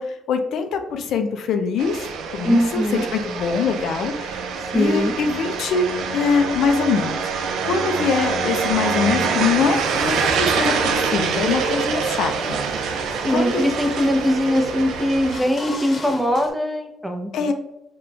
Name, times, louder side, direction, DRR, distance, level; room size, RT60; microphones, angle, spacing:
voice 1, 0.0-2.0 2.3-4.4 4.7-13.0 13.3-13.6 17.3-17.5, left 5 dB, 75° left, 6 dB, 0.4 m, -23 dB
sound 1, 1.8-15.4, right 5 dB, 85° right, 0.4 m, -25 dB
voice 2, 2.4-3.0 4.7-5.1 13.2-17.5, equal, ahead, 3 dB, 0.6 m, -21 dB
sound 2, 9.7-16.5, left 2 dB, 45° left, 0.9 m, -40 dB
3.8 x 2.2 x 3.3 m, 0.86 s
cardioid pair, 90°, 0 cm